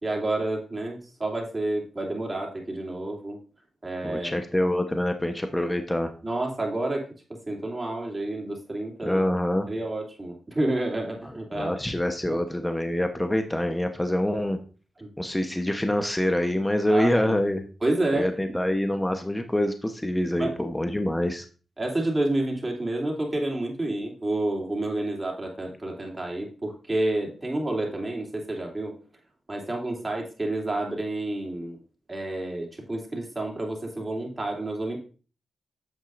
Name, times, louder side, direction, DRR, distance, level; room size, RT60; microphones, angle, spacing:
voice 1, 0.0-3.4 3.8-4.4 6.2-9.2 9.7-11.8 12.3-12.4 15.0-15.1 16.9-17.4 17.8-18.3 20.4-20.6 21.8-28.9 29.5-31.8 32.1-35.0, right 2 dB, 25° right, 0 dB, 3.0 m, -29 dB
voice 2, 4.0-6.1 9.0-9.7 11.5-14.6 15.2-17.6 18.1-21.4, left 1 dB, 15° left, 6 dB, 1.0 m, -25 dB
9.2 x 7.4 x 2.6 m, 0.36 s
cardioid pair, 55°, 0 cm